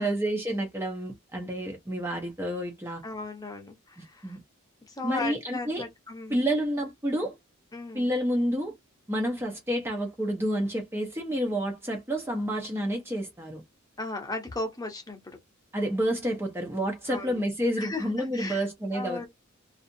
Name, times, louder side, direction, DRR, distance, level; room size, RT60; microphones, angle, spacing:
voice 1, 0.0-3.0 4.0-4.4 5.0-5.9 6.3-7.4 7.9-8.7 9.1-13.6 15.7-19.3, equal, 10° right, 0.5 m, -29 dB
voice 2, 3.0-4.4 4.9-6.4 7.7-8.1 14.0-15.4 17.1-17.4 17.8-18.6 18.9-19.3, left 3 dB, 15° left, 0.8 m, -36 dB
2.5 x 2.4 x 2.6 m
head